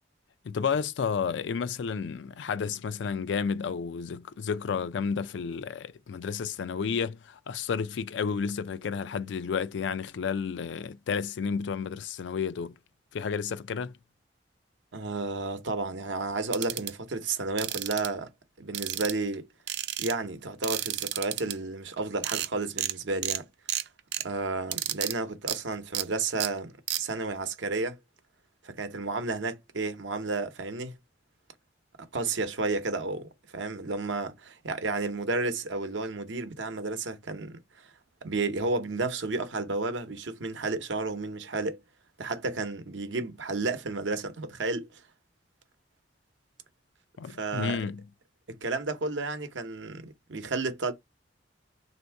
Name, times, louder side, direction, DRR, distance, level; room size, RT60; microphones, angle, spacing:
voice 1, 0.4-12.8 13.1-13.9 47.2-48.0, left 6 dB, 75° left, 0.4 m, -31 dB
voice 2, 14.9-18.3 18.6-19.5 20.0-23.4 24.2-28.0 28.6-30.9 32.1-37.9 38.2-41.8 42.2-45.0 47.4-47.9 48.5-50.9, right 3 dB, 90° right, 0.8 m, -32 dB
sound 1, 16.5-16.9 17.6-18.1 18.7-19.3 19.7-20.1 20.6-21.5 22.0-22.1 22.2-22.5 22.8-22.9 23.2-23.4 23.7-24.2 24.7-25.1 25.5-25.6 25.9-26.0 26.4-26.5 26.9-27.0, right 13 dB, 65° right, 0.4 m, -31 dB
3.5 x 2.7 x 4.5 m
head